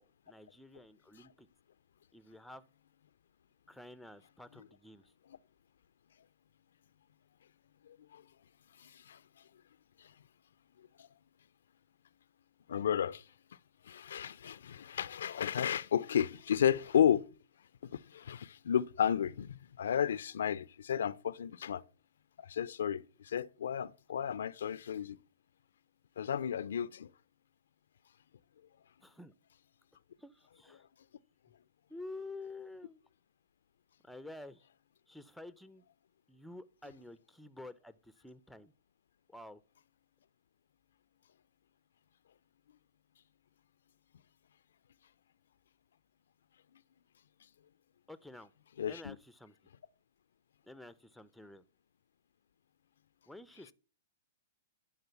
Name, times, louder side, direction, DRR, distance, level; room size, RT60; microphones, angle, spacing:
voice 1, 0.0-1.5 2.1-2.6 3.7-5.1 29.0-29.3 30.2-30.8 31.9-33.0 34.0-34.6 35.1-35.8 36.3-38.7 39.3-39.6 48.1-48.5 48.9-49.5 50.6-51.6 53.3-53.7, left 2 dB, ahead, 0.5 m, -50 dB
voice 2, 7.8-8.2 8.8-9.4 10.0-10.1 10.8-11.1 12.7-13.2 13.8-17.2 17.9-21.8 22.4-25.2 26.2-27.1 48.8-49.2, left 9 dB, 75° left, 0.4 m, -33 dB
11.5 x 3.8 x 7.0 m
hypercardioid pair, 125°, 0 cm